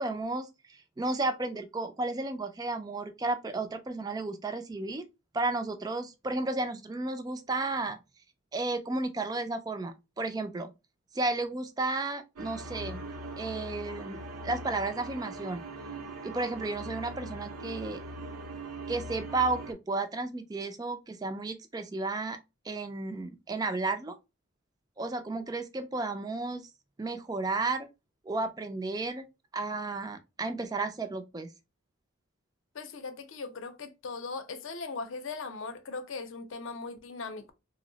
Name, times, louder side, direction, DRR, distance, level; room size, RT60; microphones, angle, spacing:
voice 1, 0.0-5.0 5.3-8.0 8.5-10.7 11.1-13.0 13.4-15.6 16.2-18.0 18.9-22.4 22.7-24.1 25.0-26.7 27.0-27.9 28.3-29.2 29.5-31.5, right 3 dB, 20° right, 0.3 m, -33 dB
sound 1, 12.4-19.7, right 2 dB, 90° right, 0.7 m, -41 dB
voice 2, 32.7-37.5, left 4 dB, 65° left, 0.6 m, -39 dB
2.7 x 2.0 x 3.8 m
head